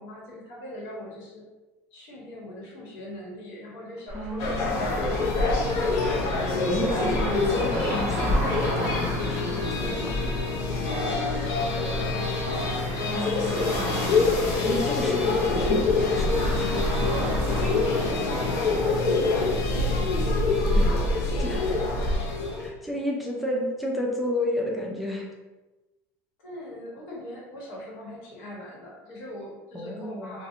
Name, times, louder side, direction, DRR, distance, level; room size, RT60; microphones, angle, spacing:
voice 1, 0.0-1.5 1.9-5.8 9.8-10.1 10.7-13.4 17.5-22.5 26.4-30.5, left 1 dB, 75° left, -4 dB, 1.0 m, -41 dB
voice 2, 4.1-4.8 6.7-10.1 13.1-14.0 14.6-16.8 20.7-20.9 21.2-21.6 22.6-25.3 29.7-30.4, left 1 dB, ahead, -2 dB, 0.4 m, -32 dB
sound 1, 4.1-22.2, right 1 dB, 75° right, 0.4 m, -32 dB
sound 2, 4.4-22.7, left 3 dB, 55° left, 0.5 m, -26 dB
2.5 x 2.0 x 2.6 m, 1.1 s
cardioid pair, 135°, 7 cm